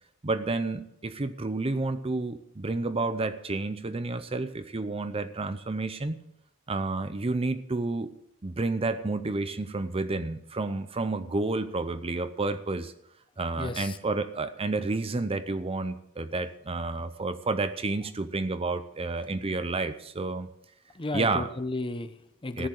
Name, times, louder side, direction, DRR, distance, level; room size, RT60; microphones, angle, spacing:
voice 1, 0.2-6.2 6.7-8.1 8.4-12.9 13.4-20.5 21.1-21.5 22.6-22.7, right 3 dB, 25° right, 11 dB, 0.6 m, -30 dB
voice 2, 13.6-14.0 20.9-22.7, left 2 dB, 25° left, 11 dB, 0.8 m, -33 dB
14.0 x 10.0 x 6.5 m, 0.76 s
head